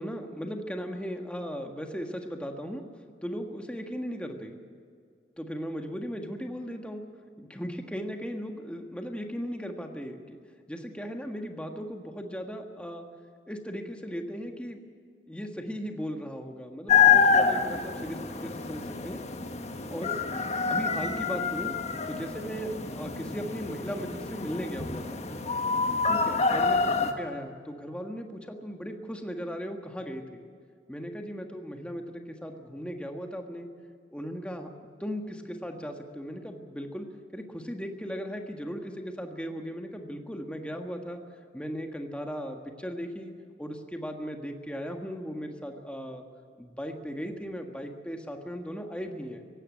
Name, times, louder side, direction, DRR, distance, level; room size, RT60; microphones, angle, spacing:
voice 1, 0.0-2.8 3.2-4.6 5.4-7.0 7.4-10.4 10.7-13.0 13.5-14.8 15.3-19.2 19.9-21.7 22.1-25.3 26.1-30.4 30.9-33.7 34.1-34.7 35.0-37.1 37.3-41.2 41.5-43.3 43.6-46.2 46.6-49.4, equal, 5° left, 3 dB, 1.6 m, -37 dB
sound 1, 16.9-27.1, left 5 dB, 40° left, 1.3 m, -27 dB
17.5 x 15.5 x 9.8 m, 2.1 s
head